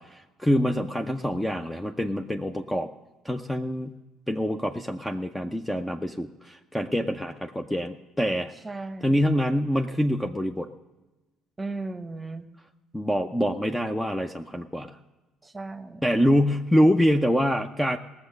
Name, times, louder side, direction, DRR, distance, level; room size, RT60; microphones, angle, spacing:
voice 1, 0.0-2.9 3.2-3.9 4.3-8.5 9.0-10.7 12.9-15.0 16.0-18.0, equal, 5° left, 5 dB, 0.6 m, -25 dB
voice 2, 8.6-9.2 11.6-12.5 15.4-16.3, right 3 dB, 15° right, 9 dB, 1.0 m, -36 dB
18.0 x 7.2 x 6.6 m, 1.1 s
supercardioid pair, 75°, 0 cm